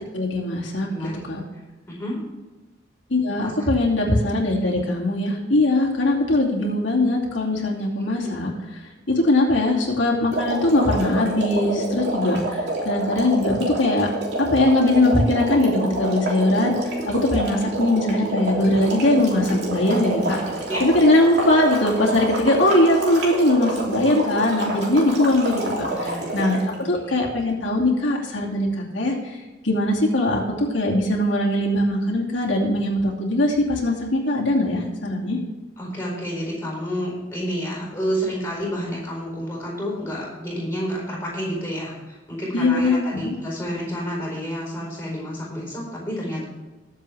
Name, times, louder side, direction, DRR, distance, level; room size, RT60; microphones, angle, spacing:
voice 1, 0.1-1.4 3.1-14.1 14.4-20.4 20.8-35.4 42.5-43.3, left 1 dB, 85° left, -3 dB, 2.6 m, -21 dB
voice 2, 0.9-1.3 1.9-2.2 3.4-3.5 20.7-20.8 25.5-25.6 26.0-26.3 26.7-27.2 35.8-46.4, equal, 10° left, -4 dB, 4.6 m, -30 dB
sound 1, 10.3-26.7, right 2 dB, 60° right, 3.1 m, -28 dB
20.0 x 7.4 x 3.5 m, 1.2 s
head